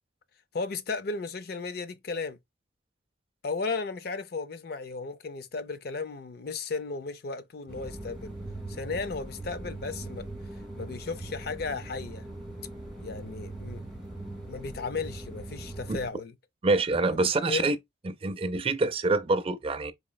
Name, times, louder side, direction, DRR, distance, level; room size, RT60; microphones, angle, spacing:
voice 1, 0.5-2.4 3.4-8.3 8.7-10.3 10.8-12.3 13.0-13.8 14.5-16.4 17.1-17.2 17.5-17.8, left 4 dB, 55° left, 0.5 m, -35 dB
sound 1, 7.7-16.1, right 2 dB, ahead, 1.5 m, -40 dB
voice 2, 16.6-17.8 18.1-19.9, right 3 dB, 30° right, 0.4 m, -26 dB
4.2 x 3.0 x 2.2 m
head